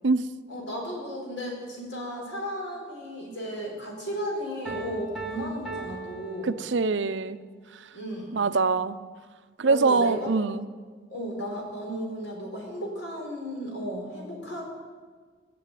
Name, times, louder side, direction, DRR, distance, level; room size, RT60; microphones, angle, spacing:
voice 1, 0.5-6.5 7.9-8.4 9.6-10.2 11.1-14.6, equal, 75° left, -1 dB, 5.1 m, -34 dB
Piano, 4.7-7.2, right 3 dB, ahead, 2.4 m, -39 dB
voice 2, 6.4-7.4 8.3-9.0 9.6-10.6, right 4 dB, 75° right, 12 dB, 0.6 m, -24 dB
19.5 x 7.7 x 9.1 m, 1.5 s
head